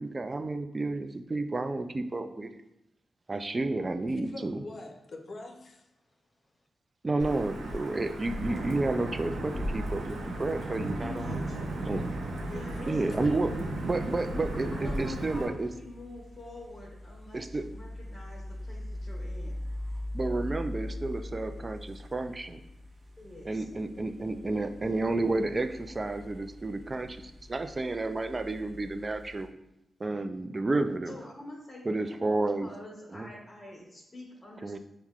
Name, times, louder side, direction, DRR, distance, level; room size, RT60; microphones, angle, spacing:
voice 1, 0.0-2.5 3.3-4.6 7.0-11.3 11.8-12.0 12.9-13.5 13.8-15.7 17.3-17.6 20.1-22.6 23.5-29.5 30.0-31.2 31.9-32.7 33.1-33.3 34.6-34.8, right 2 dB, 40° right, 8 dB, 0.4 m, -31 dB
voice 2, 4.1-5.9 12.4-13.5, left 2 dB, 55° left, 4 dB, 0.6 m, -43 dB
Wind / Thunder / Rain, 7.2-15.5, right 1 dB, 85° right, 0.7 m, -35 dB
voice 3, 11.0-11.8 12.4-13.0 14.5-19.6 23.2-23.6 31.1-31.9 32.6-34.8, left 1 dB, 30° left, -5 dB, 1.2 m, -46 dB
sound 1, 13.3-29.5, left 1 dB, 60° right, 1.0 m, -42 dB
5.7 x 2.2 x 2.4 m, 0.87 s
supercardioid pair, 45°, 0 cm